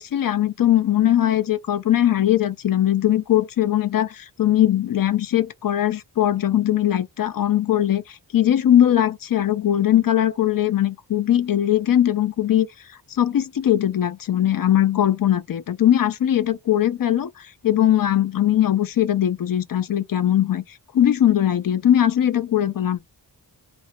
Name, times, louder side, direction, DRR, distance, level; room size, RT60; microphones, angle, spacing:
voice 1, 0.0-12.7 13.1-23.0, left 11 dB, 55° left, 0.5 m, -20 dB
3.3 x 2.1 x 2.8 m
wide cardioid pair, 110°, 42 cm